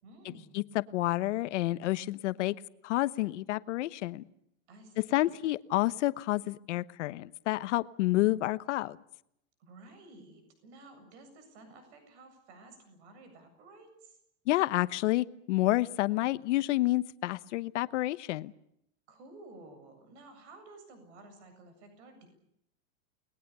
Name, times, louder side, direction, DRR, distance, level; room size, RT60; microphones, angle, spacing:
voice 1, 0.0-0.6 4.7-5.3 9.6-14.2 19.1-22.3, right 2 dB, 55° right, 8 dB, 7.6 m, -53 dB
voice 2, 0.5-2.6 2.8-4.2 5.1-9.0 14.5-18.5, left 17 dB, 60° left, 15 dB, 1.1 m, -29 dB
29.5 x 21.0 x 6.9 m, 0.76 s
supercardioid pair, 175°, 41 cm